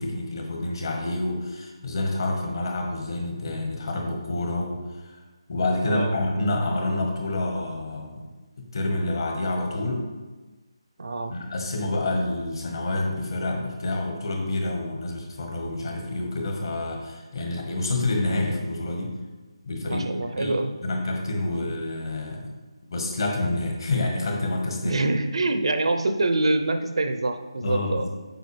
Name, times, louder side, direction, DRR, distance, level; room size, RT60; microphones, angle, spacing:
voice 1, 0.0-5.2 5.5-8.2 8.7-10.1 11.3-19.1 19.6-20.5 20.8-22.5 22.9-25.0 27.6-28.2, left 2 dB, 55° left, 1 dB, 1.6 m, -28 dB
voice 2, 5.9-6.2 11.0-11.4 19.9-20.7 21.4-21.7 24.8-28.1, right 2 dB, 70° right, 8 dB, 0.6 m, -25 dB
7.8 x 4.8 x 3.3 m, 1.2 s
figure-of-eight pair, 165°, 3 cm